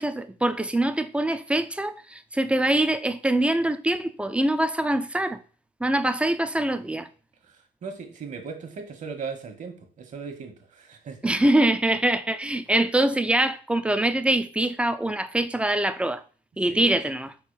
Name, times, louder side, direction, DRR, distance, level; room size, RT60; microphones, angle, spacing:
voice 1, 0.0-5.4 5.8-7.1 11.2-16.2 16.6-17.3, right 1 dB, 5° right, 0.5 m, -24 dB
voice 2, 7.4-11.3 16.7-17.0, right 5 dB, 50° right, 1.5 m, -38 dB
4.6 x 4.1 x 5.5 m
cardioid pair, 110°, 17 cm